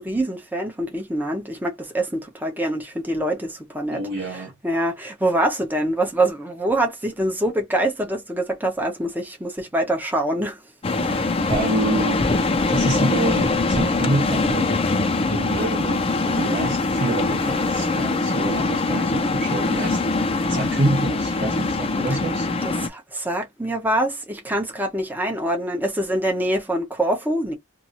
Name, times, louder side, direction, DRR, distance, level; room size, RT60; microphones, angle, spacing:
voice 1, 0.0-4.0 4.3-10.6 11.0-11.4 16.2-16.5 22.6-27.5, right 1 dB, 10° right, 0.8 m, -25 dB
voice 2, 3.9-4.5 11.5-12.2 12.7-14.8 15.3-22.5, right 2 dB, 45° right, 1.0 m, -27 dB
sound 1, 10.8-22.9, left 3 dB, 25° left, 0.3 m, -22 dB
2.7 x 2.6 x 2.6 m
head